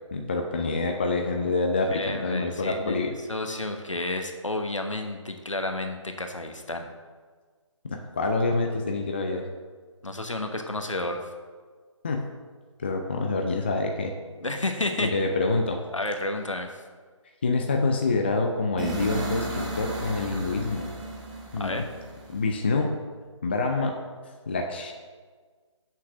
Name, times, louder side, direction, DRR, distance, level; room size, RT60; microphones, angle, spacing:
voice 1, 0.1-3.1 7.8-9.4 12.0-12.3 12.8-14.1 15.0-15.8 17.4-20.9 21.5-21.9 22.3-22.9 23.4-24.0 24.5-24.9, left 3 dB, 20° left, 3 dB, 0.4 m, -26 dB
voice 2, 1.9-3.0 3.3-6.9 10.0-11.2 14.4-15.1 15.9-16.7 21.6-21.8, left 2 dB, 75° left, 5 dB, 1.2 m, -31 dB
sound 1, 18.8-22.7, right 1 dB, 15° right, 0.9 m, -34 dB
6.6 x 5.8 x 6.1 m, 1.5 s
figure-of-eight pair, 150°, 16 cm